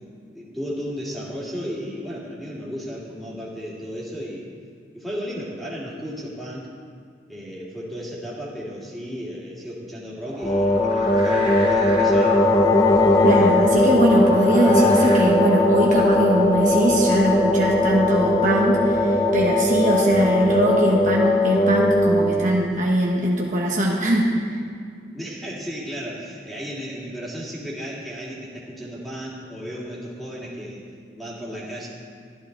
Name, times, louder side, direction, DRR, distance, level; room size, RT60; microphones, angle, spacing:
voice 1, 0.3-4.5 4.9-6.7 7.3-12.4 25.1-30.8 31.1-31.9, equal, ahead, -6 dB, 2.4 m, -34 dB
sound 1, 10.2-15.2, right 2 dB, 30° right, 1.2 m, -36 dB
sound 2, 10.4-22.7, left 1 dB, 20° left, 0.7 m, -19 dB
voice 2, 13.2-24.6, right 1 dB, 45° right, -3 dB, 1.3 m, -21 dB
12.5 x 12.0 x 4.0 m, 2.2 s
head